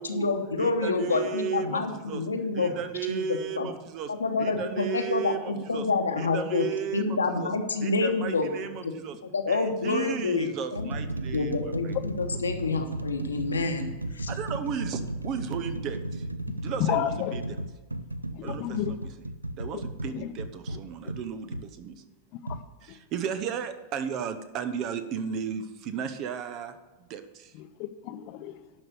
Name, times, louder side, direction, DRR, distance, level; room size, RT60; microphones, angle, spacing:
voice 1, 0.0-2.7 3.1-3.7 4.1-6.7 6.9-8.5 8.8-8.9 9.3-10.9 11.3-14.3, left 3 dB, 75° left, 5 dB, 1.1 m, -28 dB
voice 2, 0.6-2.2 2.5-4.1 4.4-5.9 6.2-7.5 7.8-9.2 9.5-11.9 14.3-16.2 16.6-17.4 18.4-19.1 19.6-22.0 22.8-26.8 27.1-27.5, right 7 dB, 40° right, 10 dB, 0.9 m, -34 dB
sound 1, 8.5-8.7 9.6-9.7 10.4-21.7 22.5-22.6, right 1 dB, 85° right, 0.5 m, -35 dB
voice 3, 16.8-17.4 18.3-19.0 20.1-20.3 22.4-22.6 22.9-23.0 27.6-28.6, left 12 dB, 45° left, 10 dB, 0.8 m, -31 dB
12.0 x 5.5 x 7.0 m, 1.2 s
figure-of-eight pair, 90°, 0 cm